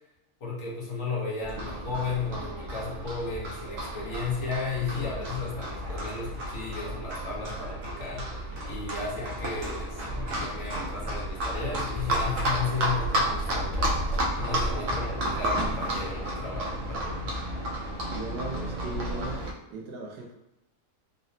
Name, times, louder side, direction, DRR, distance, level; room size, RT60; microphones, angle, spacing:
voice 1, 0.4-8.4 8.7-14.1 14.4-17.3, left 4 dB, 60° left, -4 dB, 1.1 m, -34 dB
Livestock farm animals working animals, 1.4-19.5, right 1 dB, 65° right, 0.8 m, -31 dB
voice 2, 14.5-14.8 18.1-19.4 19.7-20.3, right 2 dB, 85° right, 0 dB, 1.2 m, -38 dB
3.9 x 2.0 x 2.6 m, 0.90 s
omnidirectional pair, 1.7 m